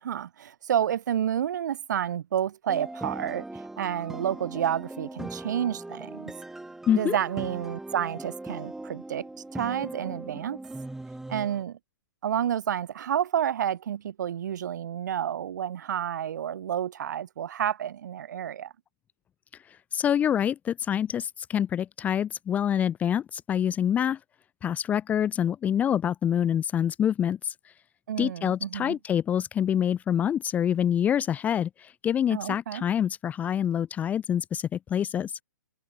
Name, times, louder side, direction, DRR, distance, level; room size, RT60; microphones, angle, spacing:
voice 1, 0.0-6.3 7.0-10.6 11.3-11.8 12.2-18.7 28.1-29.0 32.3-32.8, right 9 dB, 60° right, 6.2 m, -30 dB
sound 1, 2.7-11.6, right 2 dB, 5° right, 4.1 m, -39 dB
voice 2, 6.9-7.2 19.9-24.2 24.6-27.5 28.2-35.3, left 9 dB, 15° left, 0.7 m, -26 dB
hypercardioid pair, 140°, 11 cm